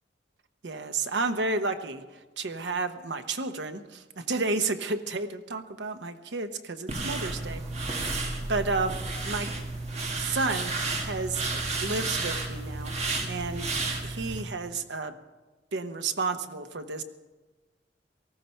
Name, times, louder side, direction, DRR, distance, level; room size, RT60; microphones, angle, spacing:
voice 1, 0.6-2.0 2.4-7.6 8.5-9.5 10.1-10.8 11.0-12.9 13.3-13.7 14.0-15.2 15.7-17.0, right 3 dB, 75° right, 8 dB, 1.0 m, -31 dB
sound 1, 6.9-14.4, right 3 dB, 40° right, 1.8 m, -32 dB
18.5 x 14.5 x 4.5 m, 1.2 s
head